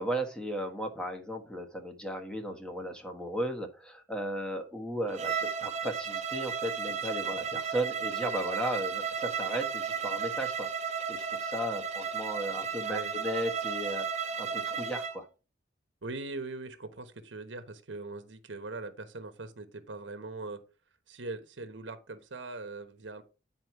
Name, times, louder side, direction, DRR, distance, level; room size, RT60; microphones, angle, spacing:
voice 1, 0.0-10.7 11.1-15.3, right 1 dB, 5° left, 1.3 m, -35 dB
Bowed string instrument, 5.1-15.2, right 6 dB, 35° right, 0.7 m, -34 dB
voice 2, 16.0-20.6 21.1-23.2, right 3 dB, 85° right, 1.1 m, -41 dB
9.7 x 4.4 x 4.5 m
head